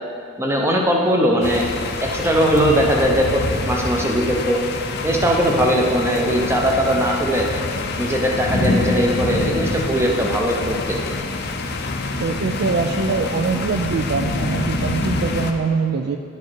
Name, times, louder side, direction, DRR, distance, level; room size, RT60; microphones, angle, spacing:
voice 1, 0.4-1.6 2.0-4.6 5.0-7.5 8.0-11.0, equal, 10° right, 0 dB, 0.7 m, -19 dB
sound 1, 1.4-15.5, left 3 dB, 45° left, 0.5 m, -26 dB
voice 2, 2.5-2.9 8.6-8.8 12.2-16.2, right 4 dB, 50° right, 4 dB, 0.3 m, -23 dB
10.5 x 4.6 x 4.6 m, 2.4 s
head